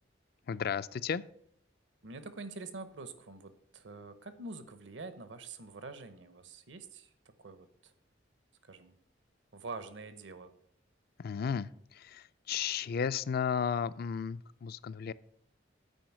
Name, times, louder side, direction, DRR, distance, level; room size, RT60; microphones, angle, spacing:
voice 1, 0.5-1.2 11.2-15.1, left 7 dB, 55° left, 16 dB, 0.4 m, -34 dB
voice 2, 2.0-7.1 7.4-7.9 8.6-8.9 9.5-10.5, right 3 dB, 75° right, 11 dB, 0.9 m, -46 dB
9.1 x 4.8 x 7.2 m, 0.70 s
head